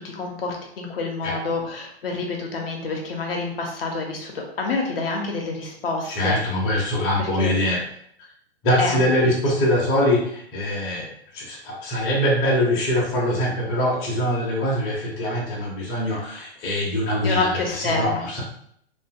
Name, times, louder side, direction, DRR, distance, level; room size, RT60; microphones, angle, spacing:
voice 1, 0.0-6.4 7.2-7.5 8.8-9.3 16.1-16.2 17.2-18.3, left 3 dB, 60° left, 1 dB, 0.7 m, -28 dB
voice 2, 6.1-7.8 8.6-11.1 11.3-17.5 17.8-18.4, left 1 dB, 20° left, -4 dB, 0.6 m, -23 dB
2.6 x 2.5 x 2.4 m, 0.67 s
figure-of-eight pair, 115°, 33 cm